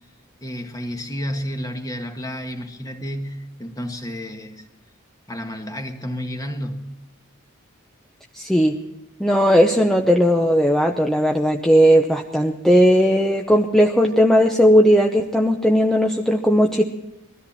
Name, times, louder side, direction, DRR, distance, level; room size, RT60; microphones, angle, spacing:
voice 1, 0.4-4.6 5.3-7.0, equal, 15° left, 4 dB, 1.5 m, -31 dB
voice 2, 8.3-8.7 9.2-16.8, equal, ahead, 2 dB, 0.8 m, -17 dB
21.5 x 13.5 x 4.3 m, 0.98 s
head